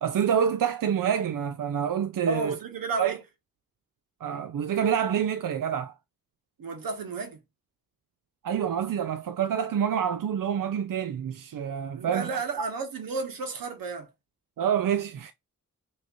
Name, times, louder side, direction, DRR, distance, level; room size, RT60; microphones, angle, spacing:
voice 1, 0.0-2.6 3.0-3.2 4.2-5.9 8.4-12.3 14.6-15.3, right 8 dB, 70° right, 0.6 m, -27 dB
voice 2, 2.3-3.2 6.6-7.4 11.9-14.1, right 4 dB, 90° right, 1.3 m, -32 dB
6.0 x 3.0 x 2.6 m
cardioid pair, 60°, 34 cm